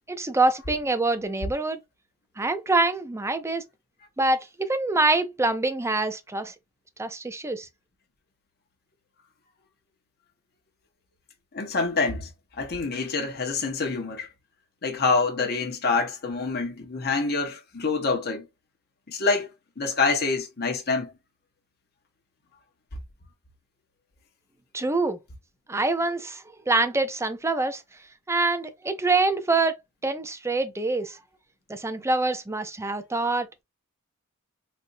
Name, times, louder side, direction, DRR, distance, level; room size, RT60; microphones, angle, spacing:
voice 1, 0.1-1.8 2.4-3.6 4.2-6.5 7.0-7.7 24.7-25.2 25.7-27.8 28.3-29.8 30.0-31.2 31.7-33.6, right 2 dB, 10° right, 0.5 m, -25 dB
voice 2, 11.5-12.3 12.6-14.3 14.8-18.5 19.1-19.5 19.8-21.1, left 4 dB, 45° left, 1.0 m, -26 dB
4.2 x 2.5 x 2.6 m
head